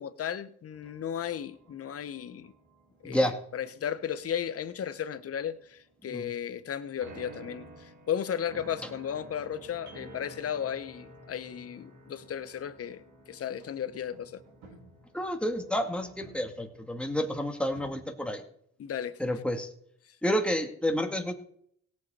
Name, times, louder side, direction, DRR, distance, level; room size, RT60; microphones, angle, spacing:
voice 1, 0.0-2.5 3.0-14.4 18.8-19.2, left 9 dB, 50° left, 1.0 m, -35 dB
sound 1, 0.7-18.3, right 1 dB, 70° right, 3.2 m, -52 dB
voice 2, 3.0-3.3 6.0-6.3 15.1-18.4 19.2-19.7 20.2-21.3, equal, 5° left, 2.0 m, -30 dB
17.5 x 7.4 x 4.3 m
cardioid pair, 90°, 30 cm